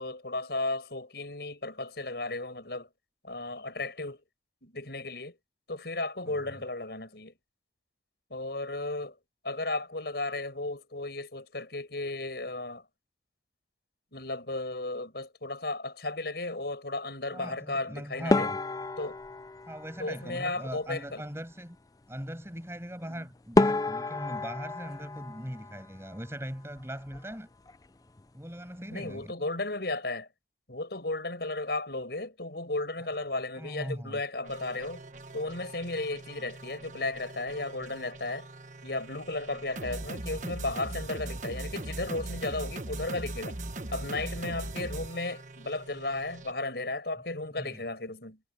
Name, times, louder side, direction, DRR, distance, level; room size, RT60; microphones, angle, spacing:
voice 1, 0.0-2.9 3.2-4.2 4.6-5.4 5.7-7.3 8.3-9.2 9.4-12.8 14.1-18.5 19.0-19.2 20.0-21.2 23.1-23.3 28.9-30.3 30.7-35.0 35.3-38.5 38.8-43.6 43.9-48.4, left 2 dB, 65° left, 5.5 m, -34 dB
voice 2, 17.3-18.6 19.7-21.8 22.1-27.5 28.3-29.3 33.6-34.2 47.6-47.8, equal, 15° right, 7.0 m, -40 dB
sound 1, 18.3-20.8 23.0-23.1 23.5-26.3 26.6-27.4 27.7-27.9 28.2-28.3 28.9-29.2, left 2 dB, 20° left, 0.4 m, -30 dB
sound 2, 34.4-46.5, right 2 dB, 45° right, 1.3 m, -40 dB
head